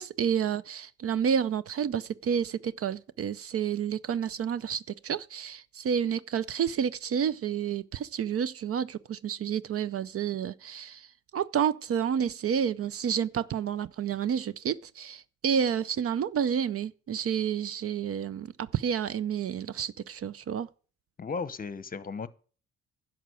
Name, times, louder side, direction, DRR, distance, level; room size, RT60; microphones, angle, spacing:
voice 1, 0.0-11.1 11.3-20.7, right 8 dB, 50° right, 0.5 m, -30 dB
voice 2, 21.2-22.3, left 4 dB, 30° left, 0.9 m, -35 dB
11.0 x 6.0 x 8.1 m
cardioid pair, 90°, 30 cm